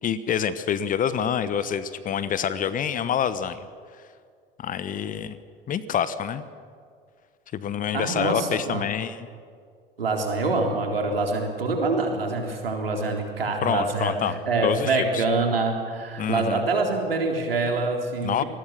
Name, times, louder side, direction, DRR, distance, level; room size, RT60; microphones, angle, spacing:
voice 1, 0.0-3.7 4.6-5.4 5.7-6.4 7.5-9.3 13.6-15.2 16.2-16.7 18.2-18.4, left 8 dB, 30° left, 14 dB, 1.1 m, -27 dB
voice 2, 7.9-8.8 10.0-18.4, right 3 dB, 75° right, 2 dB, 3.8 m, -25 dB
27.0 x 20.5 x 6.7 m, 2.2 s
figure-of-eight pair, 80°, 29 cm